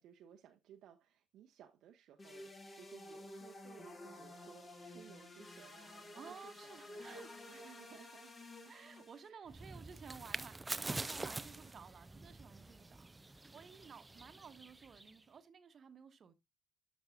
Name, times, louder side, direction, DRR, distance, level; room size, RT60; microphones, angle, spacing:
voice 1, 0.0-7.2 7.5-8.3 8.6-8.7 9.3-9.5, right 9 dB, 55° right, 0.8 m, -60 dB
sound 1, 2.2-9.3, left 1 dB, 30° left, 1.8 m, -52 dB
voice 2, 6.1-7.4 8.7-16.3, right 6 dB, 40° right, 1.1 m, -55 dB
sound 2, 9.5-15.2, right 2 dB, 15° right, 0.4 m, -46 dB
12.5 x 5.4 x 2.4 m
figure-of-eight pair, 50°, 0 cm